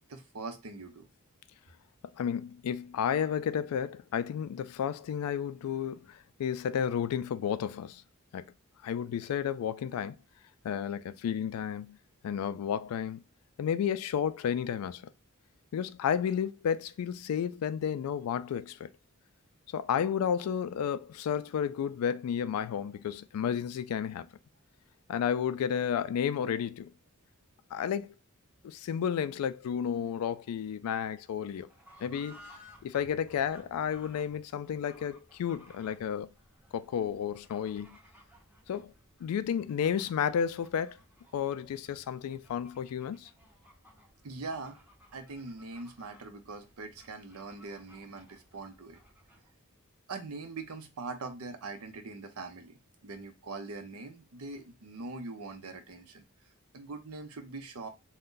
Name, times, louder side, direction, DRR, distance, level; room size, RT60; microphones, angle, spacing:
voice 1, 0.1-1.1 44.2-44.9 45.1-49.0 50.1-56.2 56.7-57.9, right 3 dB, 80° right, 0.6 m, -42 dB
voice 2, 2.2-8.0 8.3-8.5 8.8-10.2 10.6-12.0 12.2-13.2 13.6-15.1 15.7-18.9 19.7-24.3 25.1-26.9 27.7-28.1 28.6-31.7 32.0-32.5 32.8-36.3 36.7-38.0 38.7-38.9 39.2-41.0 41.3-43.3, left 8 dB, 80° left, 0.3 m, -32 dB
Fowl / Bird, 31.5-49.5, equal, 5° right, 1.0 m, -59 dB
2.5 x 2.2 x 3.7 m
head